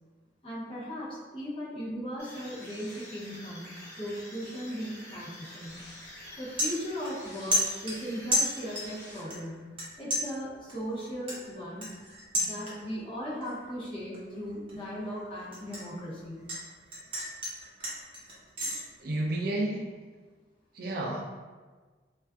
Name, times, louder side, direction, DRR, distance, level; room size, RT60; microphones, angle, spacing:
voice 1, 0.4-5.9 6.4-11.9 12.3-16.5, equal, 30° left, -8 dB, 0.7 m, -38 dB
sound 1, 2.2-9.7, left 1 dB, 55° left, 0.9 m, -48 dB
sound 2, 5.7-5.9 6.2-7.3 7.5-9.0 9.3-9.8 10.1-13.0 13.4-13.7 14.1-16.6 16.9-18.8, left 1 dB, 30° right, 0.7 m, -32 dB
voice 2, 19.0-19.9 20.7-21.2, right 1 dB, 55° right, -1 dB, 0.4 m, -31 dB
2.4 x 2.2 x 2.4 m, 1.4 s
head